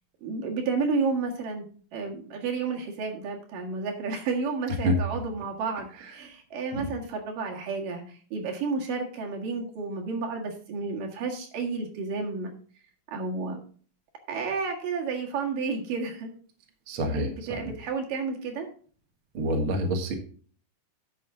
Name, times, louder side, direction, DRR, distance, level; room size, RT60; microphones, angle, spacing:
voice 1, 0.2-1.7 1.9-12.5 13.1-13.6 14.3-16.3 17.0-18.7, right 4 dB, 70° right, 1 dB, 3.3 m, -31 dB
voice 2, 16.9-17.3 17.6-17.7 19.3-20.1, right 1 dB, 45° right, 2 dB, 1.9 m, -26 dB
11.5 x 7.0 x 3.7 m, 0.43 s
omnidirectional pair, 4.1 m